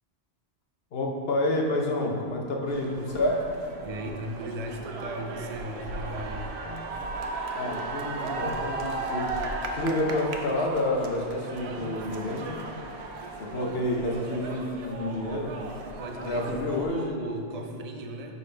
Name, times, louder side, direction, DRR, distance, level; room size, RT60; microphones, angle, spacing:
voice 1, 0.9-3.4 7.5-9.3 9.7-12.6 13.4-15.5 16.2-17.1 17.5-17.6, left 1 dB, 65° left, -1 dB, 1.1 m, -29 dB
sound 1, 2.6-16.9, right 3 dB, 80° right, 0.9 m, -36 dB
voice 2, 3.8-6.6 13.3-13.5 16.0-18.3, right 1 dB, 45° right, 4 dB, 0.6 m, -37 dB
sound 2, 6.6-6.9 8.4-8.7 10.1-10.4 11.7-12.0, left 5 dB, 30° left, 0.8 m, -45 dB
11.0 x 4.0 x 3.3 m, 2.4 s
omnidirectional pair, 1.1 m